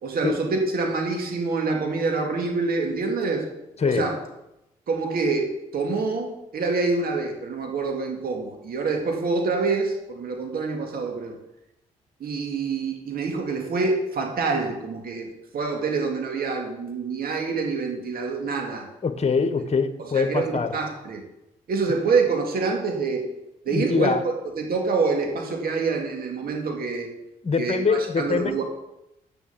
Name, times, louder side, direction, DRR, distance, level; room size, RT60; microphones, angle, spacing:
voice 1, 0.0-3.4 3.8-4.1 4.9-5.5 5.7-11.4 12.2-18.9 20.0-21.2 21.7-23.3 23.7-27.1 27.6-28.6, right 4 dB, 65° right, 2 dB, 2.4 m, -26 dB
voice 2, 19.0-20.7 23.7-24.2 27.4-28.6, left 5 dB, 40° left, 9 dB, 1.5 m, -23 dB
9.5 x 6.9 x 7.2 m, 0.88 s
supercardioid pair, 50°, 17 cm